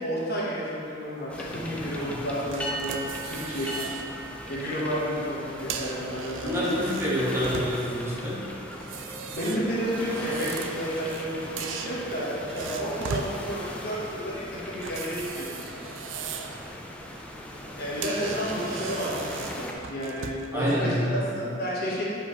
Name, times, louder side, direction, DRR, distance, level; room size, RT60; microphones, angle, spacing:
voice 1, 0.0-3.7 4.5-6.7 9.3-15.8 17.8-20.9 21.2-22.0, equal, 55° left, -6 dB, 1.4 m, -31 dB
sound 1, 1.3-19.7, equal, 5° left, 0.5 m, -38 dB
sound 2, 2.5-4.1 4.5-4.7 5.5-8.0 8.7-11.3 11.6-13.3 14.8-16.6 17.0-17.2 17.7-17.8 18.0-20.6, right 5 dB, 75° right, 0.4 m, -38 dB
voice 2, 6.4-8.4 16.4-16.5 20.5-21.2, equal, 15° right, -8 dB, 1.4 m, -27 dB
8.1 x 4.9 x 3.2 m, 2.6 s
head